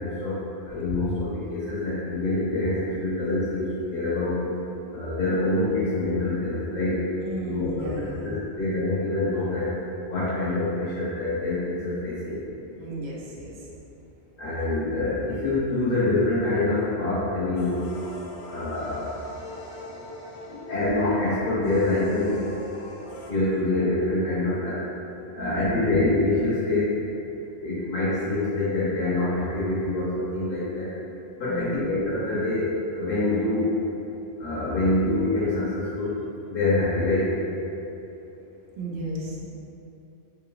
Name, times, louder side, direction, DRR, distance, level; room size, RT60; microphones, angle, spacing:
voice 1, 0.0-4.4 4.9-7.0 7.4-9.7 10.0-12.4 14.4-17.9 18.5-19.2 20.5-22.4 23.3-24.8 25.3-27.0 27.6-30.9 31.4-33.8 34.4-36.1 36.5-37.3, left 2 dB, 60° left, -10 dB, 1.0 m, -25 dB
voice 2, 7.2-8.3 12.8-13.7 25.4-25.9 31.5-31.9 38.8-39.4, right 2 dB, 80° right, -4 dB, 1.0 m, -34 dB
sound 1, 17.6-23.3, left 1 dB, 90° left, 0.8 m, -42 dB
5.3 x 2.8 x 2.3 m, 3.0 s
omnidirectional pair, 1.1 m